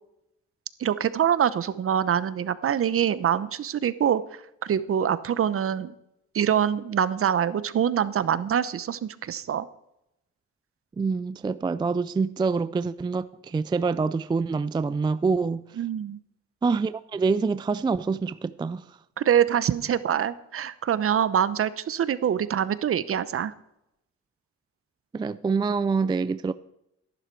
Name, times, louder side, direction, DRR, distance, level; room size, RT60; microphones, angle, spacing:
voice 1, 0.8-4.2 4.6-5.9 6.3-9.7 15.8-16.2 19.2-23.5, right 9 dB, 50° right, 0.8 m, -24 dB
voice 2, 11.0-15.6 16.6-19.0 25.1-26.5, right 4 dB, 15° right, 0.3 m, -26 dB
13.0 x 11.5 x 4.6 m
cardioid pair, 90°, 30 cm